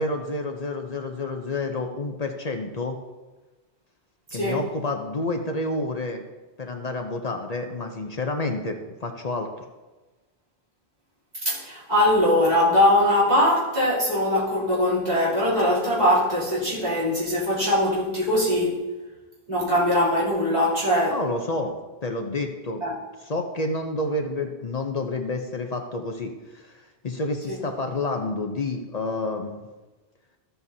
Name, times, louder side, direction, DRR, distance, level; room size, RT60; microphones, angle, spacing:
voice 1, 0.0-3.0 4.3-6.2 6.6-9.5 21.1-21.7 22.0-22.8 23.2-29.7, left 2 dB, 45° left, 0.7 m, -29 dB
voice 2, 11.4-18.8 19.5-21.2 22.8-23.0 27.5-27.6, left 1 dB, 40° right, 3.3 m, -21 dB
13.5 x 7.9 x 2.7 m
omnidirectional pair, 1.0 m